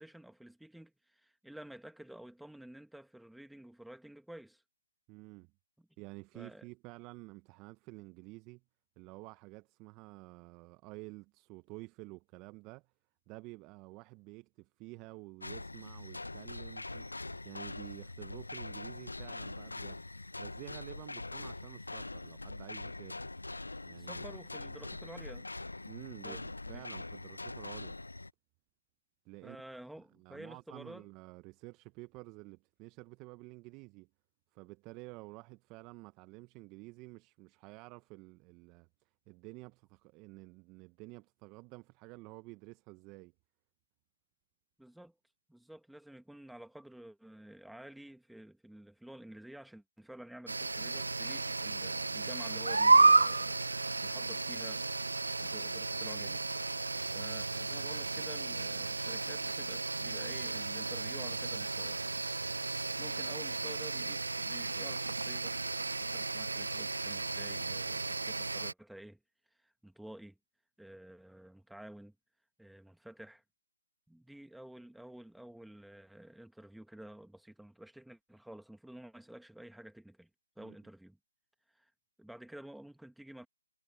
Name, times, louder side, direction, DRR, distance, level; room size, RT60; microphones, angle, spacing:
voice 1, 0.0-4.6 5.8-5.9 6.3-6.7 24.0-25.5 26.2-26.8 29.4-31.1 44.8-45.1 45.5-53.6 54.0-54.9 55.4-56.4 57.0-62.0 63.0-65.6 66.0-69.2 69.6-70.4 70.8-72.1 72.6-73.4 74.1-80.3 80.6-81.2 81.7-81.9 82.2-83.5, right 1 dB, ahead, 1.9 m, -51 dB
voice 2, 5.1-5.5 6.0-8.6 9.0-12.9 13.3-23.2 23.9-24.2 25.9-28.0 29.2-29.6 30.2-34.1 34.5-38.9 39.3-43.3 80.6-80.8, right 24 dB, 15° right, 0.9 m, -50 dB
sound 1, 15.4-28.3, left 2 dB, 85° left, 0.7 m, -43 dB
sound 2, 50.5-68.7, right 3 dB, 75° right, 0.6 m, -32 dB
figure-of-eight pair, 155°, 0 cm